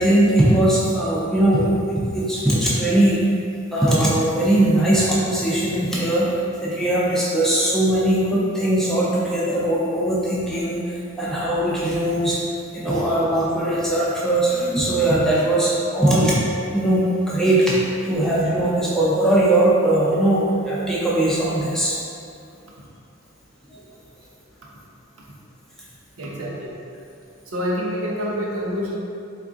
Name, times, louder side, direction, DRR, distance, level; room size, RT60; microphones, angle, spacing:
voice 1, 0.0-3.2 3.7-6.3 6.6-12.4 12.7-16.4 16.7-17.8 18.0-22.0 23.7-23.8, right 1 dB, ahead, -8 dB, 0.5 m, -20 dB
voice 2, 26.1-26.7 27.4-29.0, equal, 90° right, -4 dB, 0.7 m, -27 dB
3.5 x 2.4 x 3.8 m, 2.6 s
head